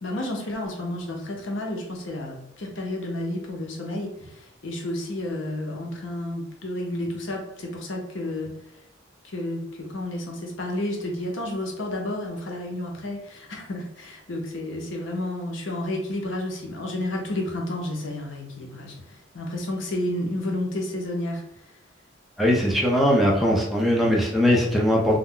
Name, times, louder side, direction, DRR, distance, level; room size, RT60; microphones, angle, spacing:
voice 1, 0.0-8.5 9.2-21.4, left 1 dB, 70° left, 0 dB, 0.7 m, -31 dB
voice 2, 22.4-25.2, equal, ahead, -3 dB, 0.4 m, -20 dB
2.3 x 2.1 x 3.6 m, 0.81 s
head